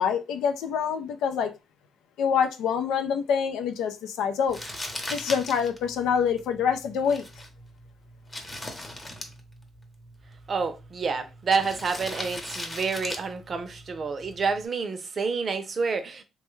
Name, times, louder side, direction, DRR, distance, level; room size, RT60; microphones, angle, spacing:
voice 1, 0.0-1.5 2.2-4.6 5.1-7.2, left 7 dB, 85° left, 0.5 m, -26 dB
Crumpling crinkling, 4.5-14.7, left 1 dB, 20° left, 0.8 m, -40 dB
voice 2, 10.5-16.2, right 5 dB, 45° right, 0.6 m, -28 dB
3.1 x 2.2 x 3.1 m
cardioid pair, 90°, 0 cm